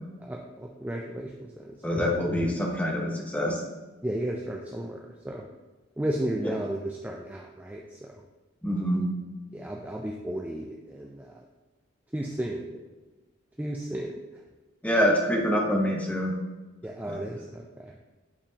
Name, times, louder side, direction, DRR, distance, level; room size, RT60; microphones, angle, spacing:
voice 1, 0.2-2.1 4.0-5.5 6.0-8.1 9.5-11.4 12.1-12.7 13.6-14.2 16.8-17.9, right 1 dB, 10° right, -1 dB, 0.4 m, -34 dB
voice 2, 1.8-3.6 8.6-9.0 14.8-16.4, equal, 10° left, 0 dB, 0.9 m, -25 dB
8.6 x 4.3 x 2.8 m, 1.2 s
head